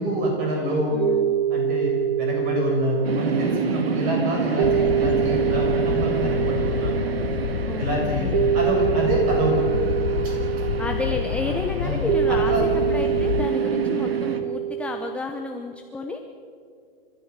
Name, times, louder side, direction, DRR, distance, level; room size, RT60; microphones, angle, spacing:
voice 1, 0.0-1.0 1.5-1.9 2.2-7.0 7.8-8.3 8.5-10.0 10.2-10.3 11.8-12.0 12.3-12.7, equal, 30° right, 0 dB, 7.6 m, -26 dB
voice 2, 0.9-1.4 7.7-8.5 10.8-16.2, left 3 dB, 5° left, 4 dB, 0.7 m, -31 dB
sound 1, 1.0-15.2, right 10 dB, 50° right, 0.7 m, -25 dB
sound 2, 3.0-14.4, right 5 dB, 85° right, 2.5 m, -30 dB
sound 3, 4.6-13.5, left 11 dB, 65° left, 0.7 m, -29 dB
29.5 x 14.0 x 7.4 m, 2.3 s
hypercardioid pair, 150°, 29 cm